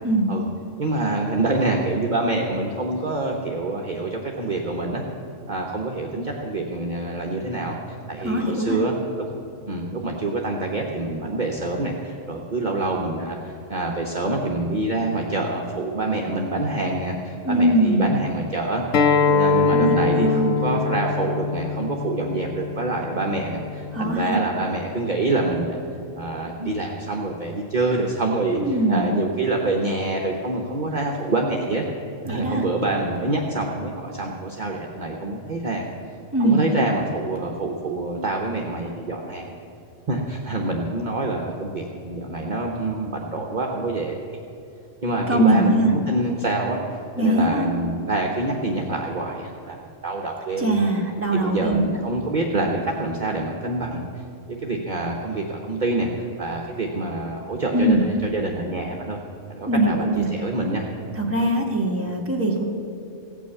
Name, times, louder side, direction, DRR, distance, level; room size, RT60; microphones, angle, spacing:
voice 1, 0.8-5.0 5.5-7.8 8.1-9.2 9.7-25.8 26.1-31.8 32.2-35.9 36.4-39.6 40.1-44.2 45.0-49.8 50.0-50.8 51.3-54.2 54.5-59.2 59.5-60.8, right 2 dB, 40° right, 0 dB, 1.0 m, -26 dB
voice 2, 8.2-8.8 17.4-18.1 19.7-20.5 23.9-24.4 28.5-29.0 32.3-32.6 36.3-36.6 45.3-45.9 47.2-47.7 50.6-51.9 57.7-58.0 59.7-60.3 61.2-62.6, right 1 dB, 10° right, -1 dB, 1.5 m, -21 dB
Acoustic guitar, 18.9-24.1, left 4 dB, 85° left, 1.2 m, -23 dB
16.0 x 6.1 x 8.3 m, 2.7 s
omnidirectional pair, 1.3 m